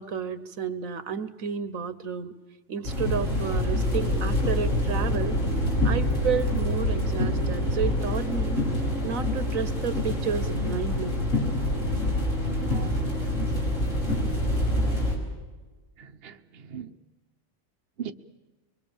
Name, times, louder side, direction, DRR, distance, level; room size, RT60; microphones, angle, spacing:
voice 1, 0.0-2.3 2.7-5.4 5.8-8.6 9.0-11.2, right 7 dB, 80° right, 12 dB, 1.6 m, -31 dB
sound 1, 2.8-15.1, left 1 dB, 70° left, 6.0 m, -26 dB
voice 2, 12.4-13.2 16.0-17.0 18.0-18.1, right 8 dB, 50° right, 6 dB, 1.1 m, -40 dB
24.0 x 23.0 x 7.2 m, 1.2 s
omnidirectional pair, 1.4 m